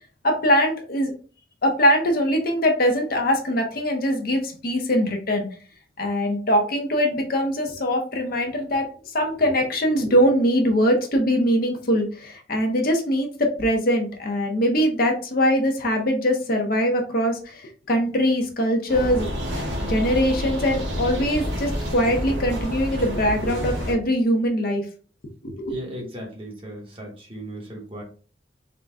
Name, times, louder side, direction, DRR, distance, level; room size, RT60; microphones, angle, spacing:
voice 1, 0.2-1.1 1.6-5.5 6.0-8.9 9.1-19.3 19.8-24.8 25.4-25.7, equal, 55° left, 2 dB, 0.8 m, -22 dB
sound 1, 18.9-23.9, equal, 80° right, 0.9 m, -28 dB
voice 2, 25.7-28.0, equal, 30° right, -1 dB, 1.1 m, -36 dB
3.9 x 2.2 x 3.4 m, 0.39 s
head